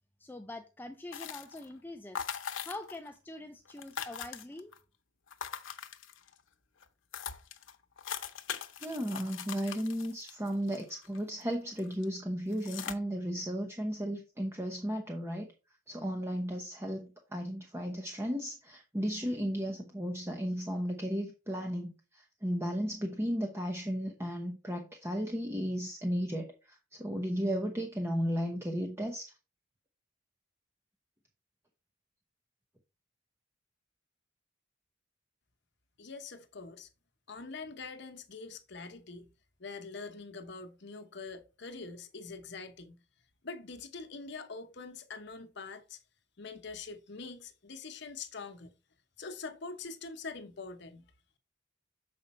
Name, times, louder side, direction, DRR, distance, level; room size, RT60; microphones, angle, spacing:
voice 1, 0.2-2.3 2.6-4.7, left 2 dB, 10° left, 0.4 m, -44 dB
sound 1, 1.1-1.7 2.1-3.1 3.3-3.4 3.6-4.8 5.3-6.4 6.8-6.9 7.1-11.4 11.8-12.0 12.5-12.9, left 8 dB, 85° left, 0.8 m, -41 dB
voice 2, 8.8-15.5 15.9-29.3, equal, 15° right, 0.8 m, -34 dB
voice 3, 36.0-36.9 37.3-39.3 39.6-43.0 43.4-46.0 46.4-48.7 49.2-51.0, left 4 dB, 60° left, 0.9 m, -44 dB
7.1 x 5.2 x 4.2 m
head